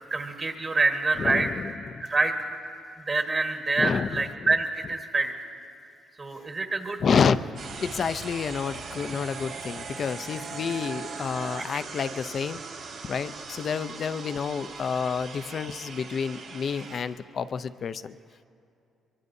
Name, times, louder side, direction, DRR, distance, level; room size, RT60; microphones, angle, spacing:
voice 1, 0.1-1.5 2.0-2.5 3.0-5.3 6.2-7.0 11.6-11.7 11.9-12.1, right 3 dB, 35° right, 4 dB, 1.4 m, -26 dB
voice 2, 1.2-2.1 3.8-4.5 6.4-6.5 7.0-7.4 7.8-12.6 13.0-18.2, left 6 dB, 50° left, 14 dB, 0.4 m, -29 dB
sound 1, 7.6-17.0, right 4 dB, 80° right, 2.7 m, -40 dB
sound 2, 8.5-12.8, right 6 dB, 65° right, 0.8 m, -43 dB
23.5 x 23.0 x 2.7 m, 2.6 s
cardioid pair, 90°, 0 cm